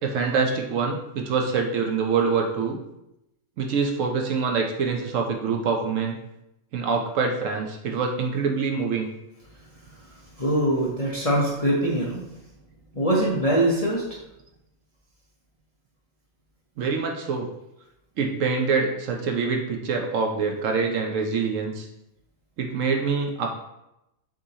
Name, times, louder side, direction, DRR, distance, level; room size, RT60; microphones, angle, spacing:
voice 1, 0.0-2.8 3.6-6.2 6.7-9.1 16.8-17.5 18.2-21.9 22.6-23.6, right 5 dB, 70° right, 2 dB, 0.9 m, -25 dB
voice 2, 10.0-12.2 12.9-14.0, right 1 dB, 35° left, -5 dB, 0.6 m, -23 dB
6.1 x 2.8 x 2.7 m, 0.87 s
omnidirectional pair, 1.5 m